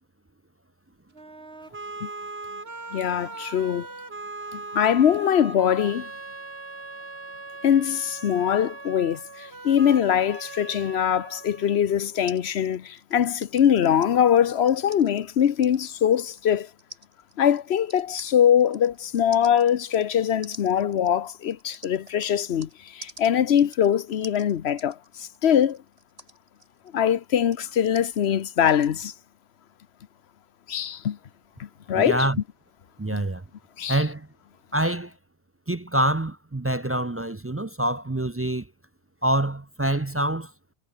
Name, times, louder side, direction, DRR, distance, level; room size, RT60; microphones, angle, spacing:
sound 1, 1.1-12.1, right 3 dB, 75° right, 3.3 m, -40 dB
voice 1, 2.9-3.9 4.5-6.1 7.6-16.7 17.4-25.8 26.9-29.1 30.7-31.2 31.9-32.3 33.1-33.2 33.8-34.0, left 9 dB, 80° left, 1.1 m, -22 dB
sound 2, 12.3-22.7 23.0-29.0, right 1 dB, 35° right, 4.7 m, -48 dB
voice 2, 31.9-32.4 33.0-33.4 33.9-34.3 34.7-35.1 35.7-38.7 39.2-40.5, right 1 dB, 20° right, 0.4 m, -26 dB
omnidirectional pair, 1.1 m